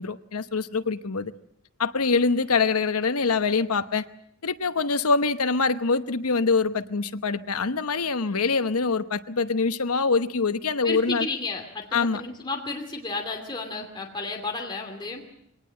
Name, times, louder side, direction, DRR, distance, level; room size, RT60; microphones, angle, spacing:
voice 1, 0.0-1.3 1.8-4.0 4.4-11.3 11.9-12.2, left 4 dB, 80° left, 11 dB, 1.0 m, -24 dB
voice 2, 10.8-11.9 12.1-15.2, left 3 dB, 20° left, 1 dB, 2.7 m, -32 dB
23.0 x 19.0 x 7.7 m, 0.73 s
head